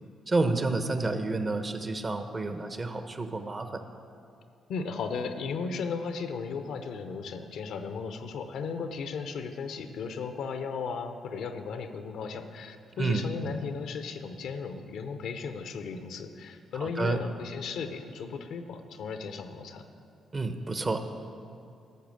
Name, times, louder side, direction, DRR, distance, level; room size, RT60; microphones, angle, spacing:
voice 1, 0.3-3.8 13.0-13.6 16.7-17.2 20.3-21.1, right 3 dB, 35° right, 8 dB, 1.0 m, -30 dB
voice 2, 4.7-19.8, left 5 dB, 80° left, 8 dB, 0.7 m, -36 dB
12.0 x 6.7 x 6.4 m, 2.5 s
supercardioid pair, 60°, 0 cm